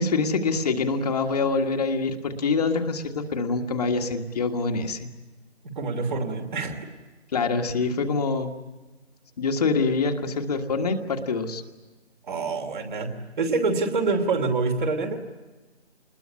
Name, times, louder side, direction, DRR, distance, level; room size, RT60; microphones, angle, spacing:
voice 1, 0.0-5.1 7.3-8.6 9.4-11.6, left 4 dB, 35° left, 4 dB, 1.6 m, -25 dB
voice 2, 5.6-6.8 12.3-13.1 13.4-15.2, right 3 dB, 45° right, 5 dB, 3.1 m, -26 dB
27.5 x 21.0 x 8.5 m, 1.2 s
figure-of-eight pair, 150°, 33 cm